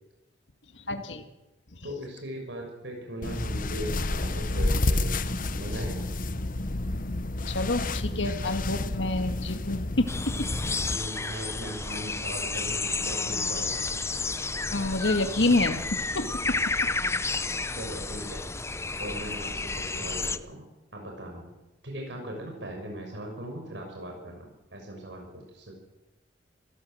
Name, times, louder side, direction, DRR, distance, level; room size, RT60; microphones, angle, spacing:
voice 1, 0.7-1.2 7.5-10.3 14.7-16.6, left 2 dB, 80° left, 7 dB, 1.8 m, -28 dB
voice 2, 1.8-5.2 5.6-6.1 10.8-13.7 17.7-18.5 19.0-20.6 20.9-21.5 21.8-25.8, equal, 75° right, 1 dB, 6.1 m, -39 dB
sound 1, 3.2-11.0, left 2 dB, 50° left, 1.1 m, -30 dB
sound 2, 10.1-20.4, left 3 dB, 15° left, 0.7 m, -31 dB
26.0 x 16.5 x 7.7 m, 0.99 s
head